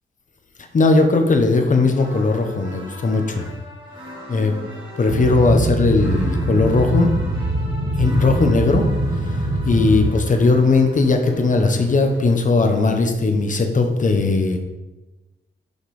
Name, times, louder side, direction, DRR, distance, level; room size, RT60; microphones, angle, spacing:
voice 1, 0.6-3.5 4.3-4.5 5.0-7.1 8.0-8.9 9.3-14.6, left 3 dB, 40° left, 5 dB, 1.0 m, -18 dB
sound 1, 1.9-12.3, equal, 25° right, 2.5 m, -39 dB
Boat Water vehicle, 5.1-10.1, right 1 dB, 45° right, 1.3 m, -22 dB
6.5 x 5.3 x 4.9 m, 1.1 s
wide cardioid pair, 135°, 20 cm